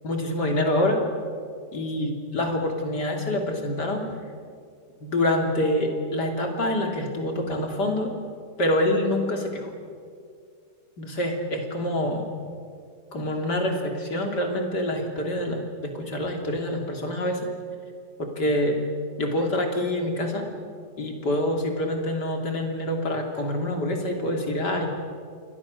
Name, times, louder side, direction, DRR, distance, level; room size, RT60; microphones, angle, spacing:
voice 1, 0.0-1.0 1.7-4.1 5.0-8.1 8.6-9.7 11.0-12.3 13.1-15.6 15.9-17.4 18.2-18.8 19.2-20.4 21.0-24.9, left 1 dB, 70° left, 3 dB, 3.6 m, -26 dB
28.5 x 22.0 x 6.6 m, 2.2 s
omnidirectional pair, 1.9 m